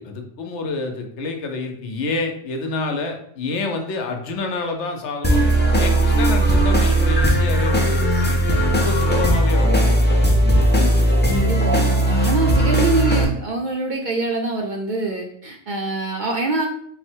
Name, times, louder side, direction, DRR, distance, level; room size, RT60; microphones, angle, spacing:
voice 1, 0.0-5.4 5.8-10.3, left 3 dB, 80° left, 4 dB, 1.0 m, -28 dB
sound 1, 5.2-13.2, right 1 dB, 15° left, 0.4 m, -17 dB
voice 2, 11.3-16.7, right 3 dB, 55° right, 1 dB, 0.5 m, -24 dB
4.1 x 2.1 x 4.4 m, 0.67 s
omnidirectional pair, 1.2 m